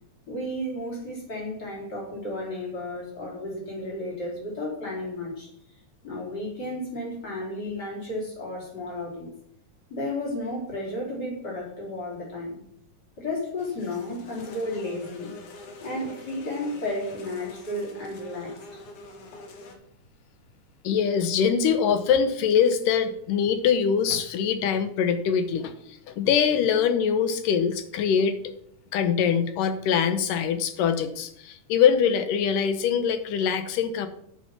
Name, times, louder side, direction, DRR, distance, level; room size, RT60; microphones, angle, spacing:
voice 1, 0.2-5.5 6.0-9.3 9.9-12.6 13.2-15.3 15.8-18.5, left 1 dB, 30° left, -4 dB, 4.7 m, -33 dB
sound 1, 13.6-19.7, left 2 dB, 70° left, 2.9 m, -45 dB
voice 2, 20.8-28.4 28.9-34.1, left 7 dB, 90° left, 10 dB, 2.6 m, -23 dB
10.0 x 7.3 x 6.0 m, 0.69 s
omnidirectional pair, 3.7 m